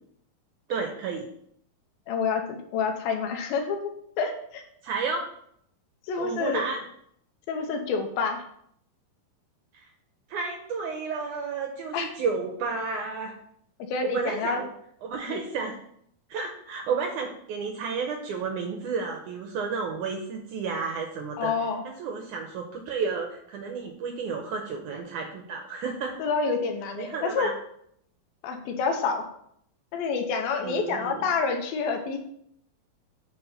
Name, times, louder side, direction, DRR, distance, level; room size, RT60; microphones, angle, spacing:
voice 1, 0.7-1.3 4.8-5.3 6.2-6.8 9.7-9.8 10.3-13.3 14.0-14.7 15.0-15.8 16.3-21.5 22.0-26.1 27.0-27.5 30.6-31.2, right 5 dB, 75° right, 3 dB, 1.9 m, -32 dB
voice 2, 2.1-2.4 2.7-3.9 4.2-4.6 6.1-6.7 7.5-8.4 11.9-12.1 13.9-14.6 15.3-15.4 21.4-21.8 26.2-27.5 28.4-29.3 29.9-32.2, left 5 dB, 80° left, 4 dB, 2.8 m, -28 dB
8.4 x 4.1 x 5.6 m, 0.69 s
omnidirectional pair, 4.3 m